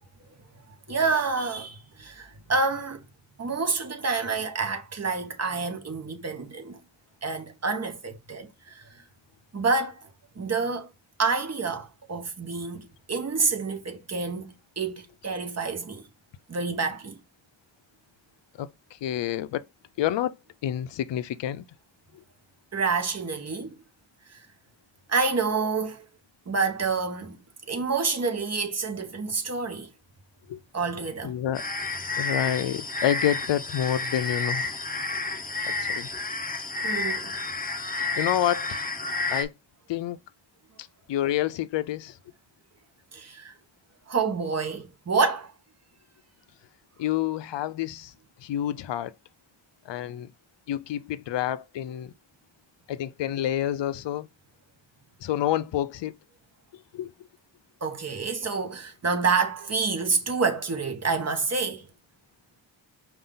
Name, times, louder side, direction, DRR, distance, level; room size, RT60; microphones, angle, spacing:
voice 1, 0.9-3.0 3.4-6.8 7.2-8.9 9.5-10.1 10.4-10.9 11.2-16.0 16.5-17.2 22.7-23.8 24.3-24.4 25.1-26.1 26.5-27.4 27.7-29.9 30.7-31.4 36.8-37.4 43.1-43.5 44.1-45.5 57.8-61.9, right 4 dB, 35° right, 1.1 m, -28 dB
voice 2, 18.6-19.6 20.0-20.3 20.6-21.6 30.5-30.6 31.2-31.6 32.2-34.7 35.6-36.2 38.2-38.8 39.3-39.5 39.9-40.2 41.1-42.2 47.0-48.1 48.4-49.1 49.9-50.3 50.7-52.1 52.9-54.3 55.2-56.1 56.9-57.1, left 11 dB, 65° left, 0.6 m, -28 dB
sound 1, 31.5-39.4, left 3 dB, 20° left, 0.7 m, -30 dB
5.2 x 2.6 x 3.8 m
wide cardioid pair, 115°, 46 cm